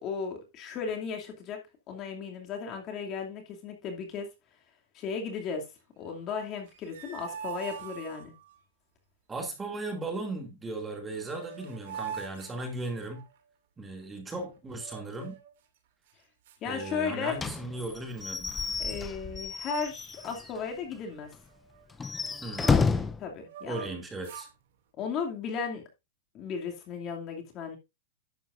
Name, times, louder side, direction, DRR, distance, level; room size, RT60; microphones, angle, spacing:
voice 1, 0.0-1.6 1.9-4.3 4.9-5.7 6.0-8.3 16.6-17.4 18.8-21.3 23.2-23.8 25.0-25.8 26.3-27.8, left 5 dB, 35° left, 2.5 m, -35 dB
sound 1, 6.6-8.6 10.8-10.9 11.1-13.4 14.7-15.5 16.1-16.2 16.5-17.6 17.9-18.2 18.8-19.4 19.7-19.9 20.2-23.0 23.4-24.5, right 8 dB, 65° right, 2.4 m, -44 dB
voice 2, 9.3-13.2 13.8-15.4 16.6-18.5 22.4-22.7 23.7-24.5, right 2 dB, 15° right, 2.4 m, -37 dB
Slam / Squeak / Wood, 17.4-20.6 20.9-21.0 21.3-21.4 21.9-23.2, left 5 dB, 15° left, 0.6 m, -30 dB
11.0 x 8.7 x 2.5 m
hypercardioid pair, 135°, 0 cm